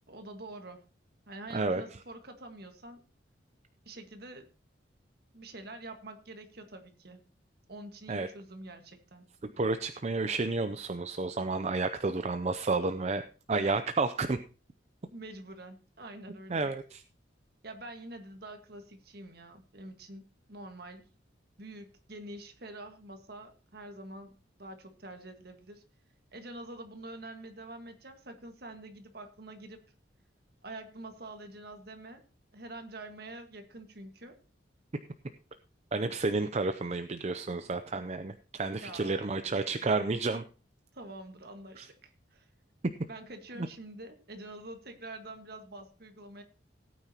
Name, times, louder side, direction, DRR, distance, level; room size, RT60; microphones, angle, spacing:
voice 1, 0.1-0.8 1.3-3.0 3.9-4.5 5.3-7.2 7.7-9.3 15.1-16.7 17.6-21.0 21.6-25.8 26.3-29.8 30.6-32.2 32.5-34.4 38.8-39.3 40.9-42.5 43.1-46.4, right 2 dB, 55° right, 6 dB, 1.6 m, -46 dB
voice 2, 9.4-14.4 16.5-17.0 35.9-40.4 41.8-41.9 43.6-43.7, right 3 dB, 35° right, 9 dB, 0.5 m, -31 dB
17.5 x 9.1 x 2.9 m, 0.36 s
head